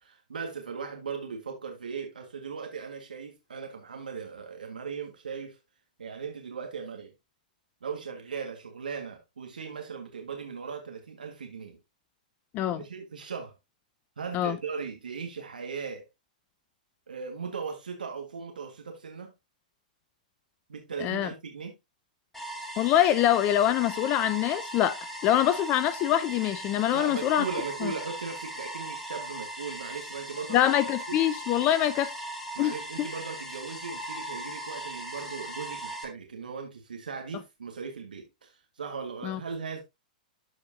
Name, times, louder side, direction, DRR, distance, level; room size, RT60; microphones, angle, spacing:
voice 1, 0.0-5.6 6.0-7.1 7.8-11.8 12.7-13.5 14.2-16.1 17.1-19.3 20.7-21.7 26.9-30.6 31.1-31.2 32.5-39.8, right 5 dB, 85° right, 1.7 m, -38 dB
sound 1, 22.3-36.0, right 1 dB, 5° left, 2.4 m, -39 dB
voice 2, 22.8-27.4 27.8-27.9 30.5-32.1 32.6-33.1 39.2-39.4, left 12 dB, 35° left, 0.5 m, -25 dB
13.0 x 4.5 x 2.7 m
hypercardioid pair, 120°, 5 cm